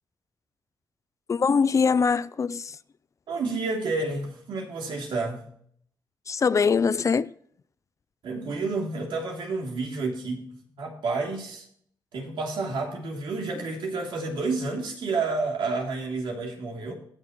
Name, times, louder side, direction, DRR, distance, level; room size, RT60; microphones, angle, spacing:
voice 1, 1.3-2.8 6.3-7.3, left 5 dB, 40° left, 0.4 m, -22 dB
voice 2, 3.3-5.5 8.2-10.4 10.8-11.6 12.1-16.9, right 3 dB, 85° right, 3.0 m, -30 dB
19.5 x 6.5 x 3.1 m
cardioid pair, 100°, 8 cm